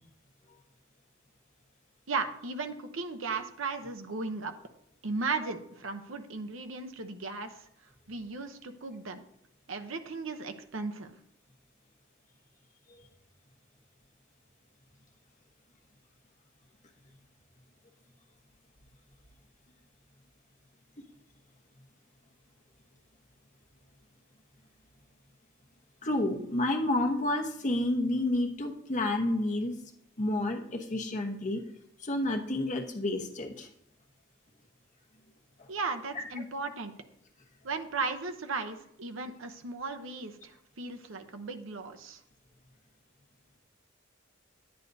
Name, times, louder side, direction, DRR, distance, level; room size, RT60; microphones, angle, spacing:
voice 1, 2.1-4.5 5.0-7.6 8.1-9.2 9.7-11.1 35.7-36.9 37.6-42.2, right 4 dB, 70° right, 6 dB, 0.8 m, -36 dB
voice 2, 26.0-29.7 30.2-31.6 32.0-33.7 35.6-35.7 36.1-36.2, left 1 dB, 40° left, 2 dB, 1.1 m, -30 dB
11.0 x 8.9 x 2.7 m, 0.74 s
head